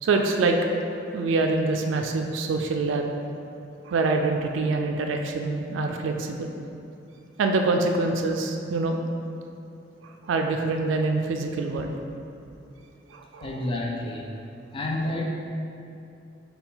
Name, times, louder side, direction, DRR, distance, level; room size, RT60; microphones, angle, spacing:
voice 1, 0.0-3.1 3.9-6.5 7.4-9.0 10.0-11.9 13.1-13.6, right 3 dB, 70° right, 3 dB, 0.3 m, -25 dB
voice 2, 13.4-14.3 14.7-15.2, left 2 dB, 30° left, -1 dB, 0.5 m, -29 dB
5.7 x 2.3 x 3.9 m, 2.6 s
head